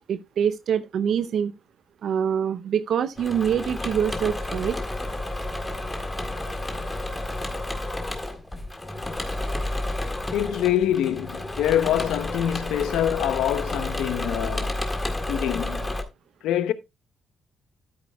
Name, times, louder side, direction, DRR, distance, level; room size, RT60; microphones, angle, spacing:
voice 1, 0.0-1.5 2.0-4.8, right 8 dB, 65° right, 0.6 m, -25 dB
Engine / Mechanisms, 3.2-16.0, left 1 dB, 15° left, 1.7 m, -31 dB
voice 2, 10.3-14.8 15.3-15.9 16.4-16.7, left 11 dB, 85° left, 0.7 m, -25 dB
12.5 x 8.7 x 2.3 m
cardioid pair, 90°, 0 cm